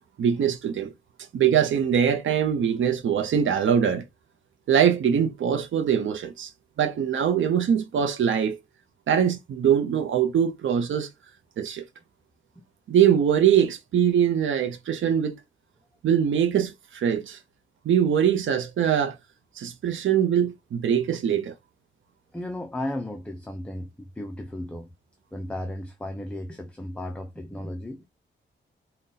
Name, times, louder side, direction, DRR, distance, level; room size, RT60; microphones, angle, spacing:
voice 1, 0.2-0.9 1.3-4.0 4.7-6.5 6.8-8.6 9.1-11.1 11.6-11.8 12.9-15.4 16.0-17.4 17.9-19.2 19.6-21.5, right 8 dB, 75° right, 0.6 m, -22 dB
voice 2, 22.3-24.9 25.3-28.1, left 1 dB, 5° left, 0.4 m, -35 dB
4.0 x 2.2 x 3.8 m
wide cardioid pair, 125°, 21 cm